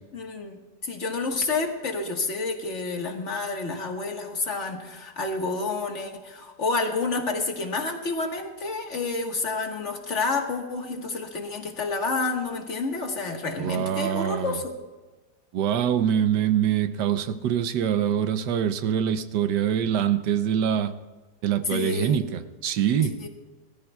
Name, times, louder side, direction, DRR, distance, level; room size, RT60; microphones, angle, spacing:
voice 1, 0.1-14.7 21.6-22.2 23.2-23.3, left 3 dB, 45° left, 2 dB, 1.8 m, -29 dB
voice 2, 13.6-14.6 15.5-21.0 21.4-23.3, right 9 dB, 90° right, 11 dB, 1.4 m, -24 dB
22.0 x 14.0 x 2.3 m, 1.3 s
omnidirectional pair, 1.8 m